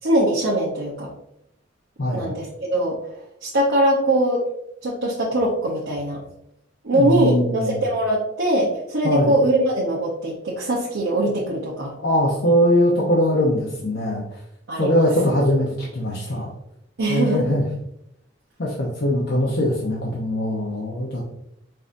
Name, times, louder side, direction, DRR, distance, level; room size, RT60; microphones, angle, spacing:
voice 1, 0.0-1.1 2.1-3.0 3.4-4.4 4.8-6.2 6.8-11.9 14.7-15.1 17.0-17.6, right 1 dB, 85° right, -4 dB, 0.8 m, -22 dB
voice 2, 2.0-2.3 6.9-7.8 9.0-9.3 11.9-14.2 14.8-16.5 17.1-17.6 18.6-21.3, equal, 60° left, -4 dB, 0.8 m, -21 dB
5.4 x 2.7 x 2.5 m, 0.77 s
head